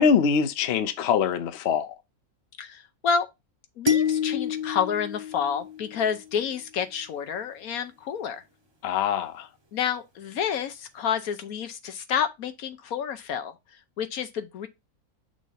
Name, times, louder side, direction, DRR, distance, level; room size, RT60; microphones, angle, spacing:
voice 1, 0.0-1.9 8.8-9.5, left 6 dB, 60° left, 0.8 m, -23 dB
voice 2, 2.6-3.3 3.8-8.4 9.7-14.7, left 7 dB, 75° left, 1.2 m, -29 dB
sound 1, 3.9-6.3, left 7 dB, 20° right, 0.8 m, -28 dB
6.3 x 2.7 x 5.5 m
omnidirectional pair, 1.6 m